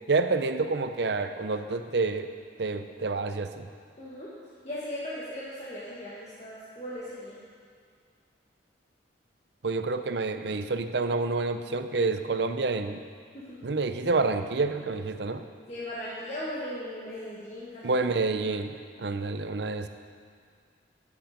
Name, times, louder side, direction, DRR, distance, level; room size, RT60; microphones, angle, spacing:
voice 1, 0.1-2.3 2.6-3.7 9.6-13.0 13.6-15.4 17.8-19.9, right 3 dB, 65° right, 9 dB, 0.6 m, -28 dB
voice 2, 4.0-4.3 4.6-7.4 13.3-13.6 15.7-17.8, left 1 dB, 35° left, -9 dB, 1.9 m, -38 dB
14.5 x 8.2 x 5.1 m, 2.1 s
head